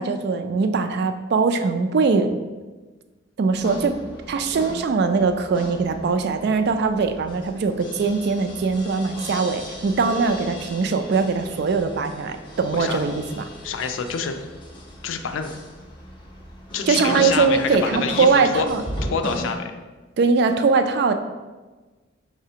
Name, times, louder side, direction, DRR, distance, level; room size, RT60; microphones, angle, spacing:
voice 1, 0.0-2.3 3.4-4.0 4.3-13.4 16.9-18.8 20.2-21.1, right 4 dB, 55° right, 8 dB, 0.3 m, -21 dB
sound 1, 3.5-19.5, equal, 25° left, 0.6 m, -36 dB
voice 2, 13.6-14.3 15.0-15.5 16.7-18.7 19.1-19.7, left 6 dB, 90° left, 7 dB, 0.4 m, -27 dB
4.9 x 3.2 x 2.8 m, 1.3 s
head